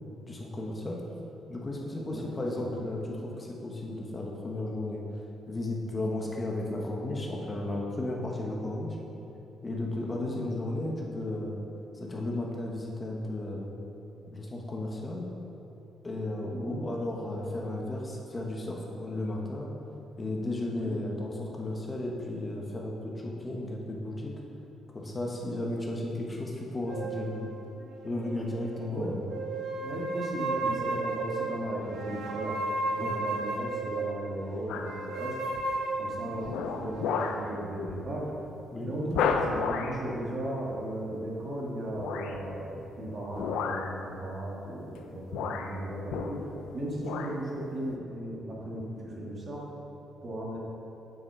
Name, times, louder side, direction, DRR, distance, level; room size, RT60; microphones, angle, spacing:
voice 1, 0.3-1.0 1.5-5.0 5.5-9.0 9.6-11.6 11.9-13.8 14.3-15.3 16.0-19.7 20.2-24.3 24.9-27.5 28.0-29.2 33.0-33.2 38.7-38.9, left 1 dB, 25° left, -1 dB, 1.1 m, -34 dB
voice 2, 10.0-10.4 16.5-16.8 20.7-20.9 28.9-29.1 29.8-32.6 32.9-35.4 36.0-38.3 38.8-46.4 46.7-49.6 50.2-50.6, right 1 dB, 40° right, -4 dB, 1.8 m, -36 dB
sound 1, 26.9-28.9 29.3-34.2 34.8-37.4, right 3 dB, 80° right, 1.1 m, -34 dB
sound 2, 34.7-35.0 35.6-35.9 36.4-37.5 37.9-38.1 38.4-38.5 39.1-40.0 41.9-42.4 43.3-44.0 44.9-45.0 45.3-46.7 47.0-47.4 47.9-48.0, left 6 dB, 85° left, 0.5 m, -32 dB
7.4 x 5.8 x 4.8 m, 2.9 s
cardioid pair, 90°, 0 cm